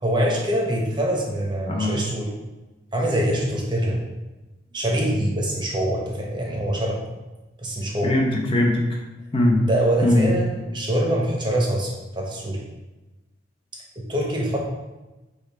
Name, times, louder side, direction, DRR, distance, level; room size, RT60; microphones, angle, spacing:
voice 1, 0.0-2.3 2.9-4.0 4.7-7.0 7.6-8.1 9.6-11.9 12.2-12.6 14.1-14.6, right 1 dB, 25° right, -2 dB, 0.8 m, -24 dB
voice 2, 1.7-2.0 8.0-9.0 9.3-9.7 10.0-10.4, left 1 dB, 30° left, 0 dB, 0.5 m, -20 dB
3.5 x 3.3 x 4.5 m, 1.1 s
head